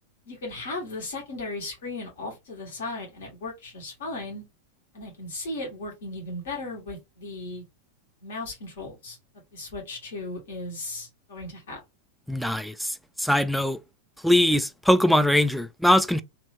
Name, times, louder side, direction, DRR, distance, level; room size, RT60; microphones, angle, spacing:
voice 1, 0.3-4.4 4.9-7.6 8.2-9.2 9.5-11.8, left 2 dB, 60° left, 1.3 m, -36 dB
voice 2, 12.3-13.8 14.2-16.2, left 1 dB, ahead, 0.3 m, -22 dB
2.9 x 2.6 x 3.3 m
figure-of-eight pair, 90°, 0 cm